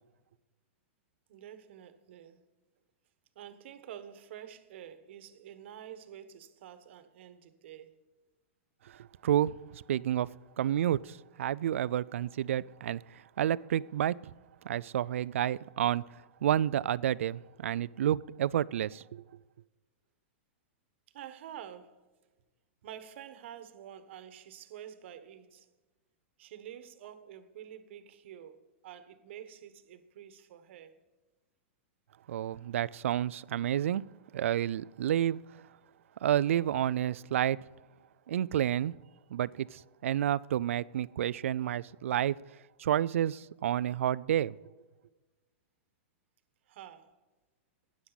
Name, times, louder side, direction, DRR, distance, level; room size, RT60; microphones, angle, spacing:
voice 1, 1.3-2.4 3.3-8.0 21.1-22.0 22.8-25.7 26.4-30.9 46.7-47.1, right 10 dB, 65° right, 1.2 m, -48 dB
voice 2, 8.9-10.3 10.6-14.3 14.6-16.0 16.4-19.2 32.3-34.0 34.3-35.4 36.2-37.6 38.3-38.9 39.3-42.4 42.8-44.6, right 11 dB, 80° right, 0.4 m, -30 dB
13.0 x 9.7 x 4.0 m
hypercardioid pair, 145°, 7 cm